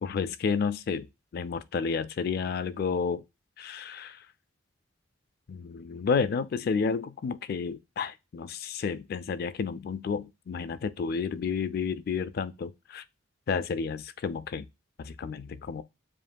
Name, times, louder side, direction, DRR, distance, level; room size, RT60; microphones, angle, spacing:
voice 1, 0.0-3.2 3.6-4.3 5.5-13.0 13.5-14.7 15.0-15.8, left 5 dB, 50° left, 0.3 m, -31 dB
7.3 x 2.6 x 2.2 m
head